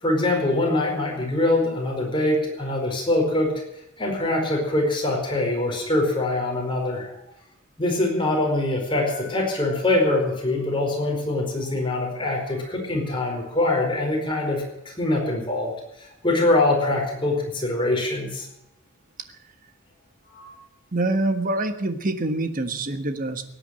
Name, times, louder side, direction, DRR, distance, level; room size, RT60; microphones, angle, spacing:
voice 1, 0.0-3.5 4.0-7.1 7.8-15.7 16.0-18.5 20.2-20.5, left 2 dB, 25° left, 0 dB, 4.7 m, -23 dB
voice 2, 20.9-23.4, right 2 dB, 40° right, 8 dB, 1.4 m, -25 dB
18.0 x 9.8 x 7.7 m, 0.85 s
head